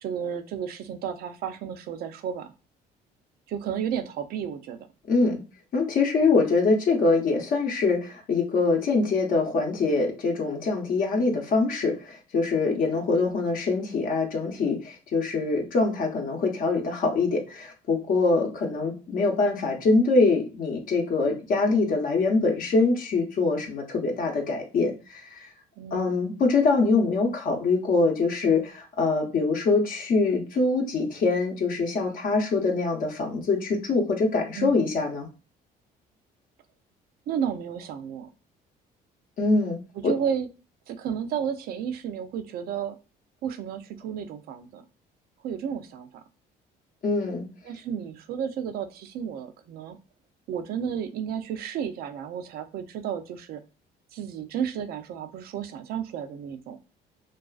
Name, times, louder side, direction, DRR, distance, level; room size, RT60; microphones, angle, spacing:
voice 1, 0.0-2.5 3.5-4.8 13.1-13.4 25.8-26.2 34.5-34.9 37.3-38.3 39.9-40.5 40.9-43.0 43.4-44.8 45.4-46.1 47.6-50.0 50.5-53.6 54.1-56.8, right 8 dB, 65° right, 9 dB, 0.4 m, -32 dB
voice 2, 5.1-5.4 5.7-25.5 25.9-35.3 39.4-39.8 40.0-40.1 47.0-47.5, left 3 dB, 55° left, 2 dB, 0.7 m, -24 dB
2.4 x 2.3 x 2.3 m, 0.32 s
cardioid pair, 110°, 17 cm